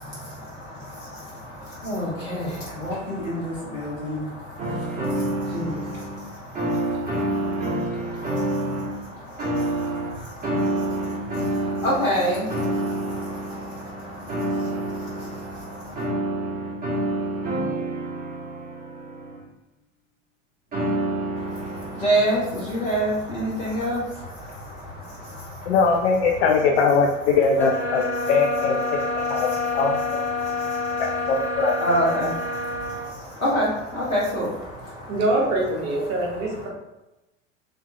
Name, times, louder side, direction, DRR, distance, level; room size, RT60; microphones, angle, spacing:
voice 1, 0.0-16.0 21.4-26.6 27.9-28.3 28.8-35.2 36.1-36.7, equal, 85° left, -7 dB, 1.0 m, -30 dB
sound 1, 4.6-6.2 6.6-9.0 9.4-19.4 20.7-22.5, right 1 dB, 20° right, 1.3 m, -28 dB
voice 2, 25.7-30.0 31.0-31.8, left 4 dB, 60° left, 1 dB, 0.5 m, -21 dB
sound 2, 27.5-33.1, left 3 dB, 5° left, 0.5 m, -28 dB
voice 3, 35.1-36.7, right 1 dB, 40° right, -2 dB, 1.2 m, -24 dB
3.4 x 3.1 x 2.8 m, 0.98 s
figure-of-eight pair, 80°, 39 cm